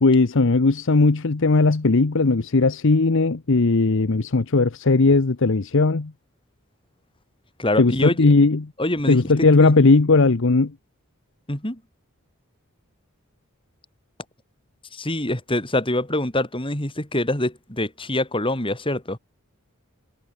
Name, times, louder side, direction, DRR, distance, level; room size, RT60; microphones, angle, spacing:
voice 1, 0.0-6.1 7.8-8.7 9.1-10.7, left 3 dB, 60° left, 0.8 m, -18 dB
voice 2, 7.6-8.3 8.8-9.2 9.6-9.7 11.5-11.8 14.9-19.2, left 1 dB, 25° left, 4.3 m, -25 dB
head